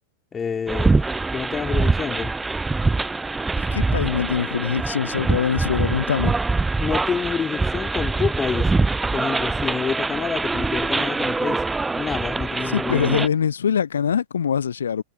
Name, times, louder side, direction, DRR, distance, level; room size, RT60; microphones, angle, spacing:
voice 1, 0.3-2.3 6.8-8.7 9.1-11.6 12.0-13.2, left 6 dB, 20° left, 3.8 m, -28 dB
sound 1, 0.7-13.3, right 3 dB, 10° right, 0.6 m, -24 dB
voice 2, 3.6-6.4 12.7-15.0, left 7 dB, 70° left, 0.8 m, -23 dB
figure-of-eight pair, 90°, 0 cm